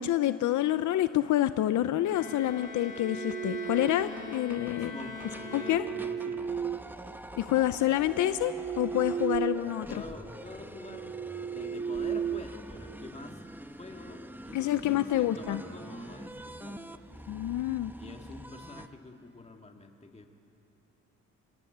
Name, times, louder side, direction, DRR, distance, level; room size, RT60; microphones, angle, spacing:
voice 1, 0.0-4.9 5.5-5.8 7.4-10.0 14.5-15.6 17.3-17.9, left 13 dB, 75° left, 12 dB, 0.7 m, -28 dB
Bowed string instrument, 2.0-6.5, left 4 dB, 90° left, 1.9 m, -42 dB
sound 1, 2.6-2.7 3.0-3.1 3.3-3.4 3.6-18.9, right 1 dB, 5° right, 1.0 m, -46 dB
sound 2, 2.8-4.3 5.3-7.4 7.9-9.8 10.1-10.3 10.8-13.1, right 7 dB, 30° right, 0.7 m, -35 dB
voice 2, 4.5-6.5 9.9-11.1 11.4-13.5 13.8-17.0 18.0-20.3, left 3 dB, 20° left, 3 dB, 2.3 m, -47 dB
26.0 x 21.0 x 8.1 m, 3.0 s
cardioid pair, 90°, 30 cm